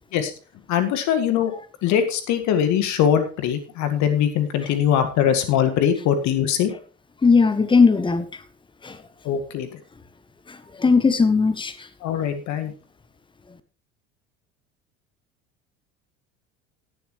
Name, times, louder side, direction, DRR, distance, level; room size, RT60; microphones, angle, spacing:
voice 1, 0.7-1.5 1.8-6.7 9.3-9.7 12.0-12.7, left 9 dB, 45° left, 1.8 m, -21 dB
voice 2, 7.2-8.2 8.8-8.9 10.8-11.7, left 4 dB, 15° left, 1.0 m, -17 dB
17.5 x 7.2 x 3.2 m
figure-of-eight pair, 65°, 38 cm